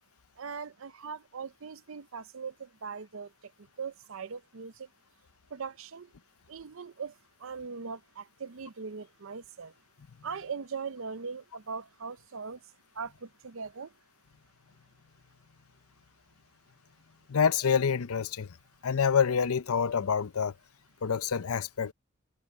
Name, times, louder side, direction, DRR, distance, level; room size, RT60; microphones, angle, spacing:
voice 1, 0.4-3.5 3.8-4.9 5.5-6.1 6.5-7.1 7.4-9.7 10.2-12.6 13.0-13.9, right 5 dB, 65° right, 0.6 m, -40 dB
voice 2, 17.3-18.6 18.8-20.5 21.0-21.9, left 6 dB, 85° left, 0.6 m, -27 dB
head